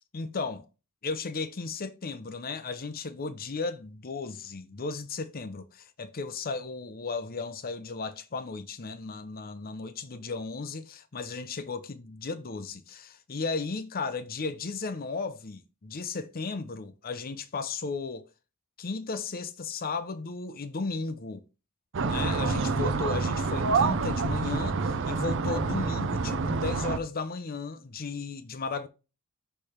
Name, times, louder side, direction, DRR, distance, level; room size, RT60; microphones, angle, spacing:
voice 1, 0.1-0.7 1.0-18.3 18.8-21.4 22.0-28.9, left 4 dB, 40° left, 0.7 m, -35 dB
sound 1, 21.9-27.0, right 4 dB, 55° right, 0.6 m, -27 dB
6.6 x 3.4 x 4.3 m
head